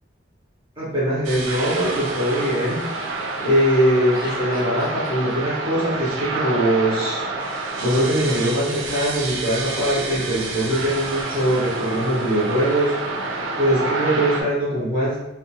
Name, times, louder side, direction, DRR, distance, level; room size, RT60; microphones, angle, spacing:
voice 1, 0.8-3.1 3.4-7.3 7.8-13.0 13.6-15.2, equal, 30° right, -8 dB, 0.7 m, -22 dB
sound 1, 1.2-14.4, right 3 dB, 85° right, 0.4 m, -28 dB
Laughter, 1.3-3.6 4.0-5.9, left 2 dB, 45° left, 0.4 m, -40 dB
2.3 x 2.2 x 2.8 m, 0.93 s
head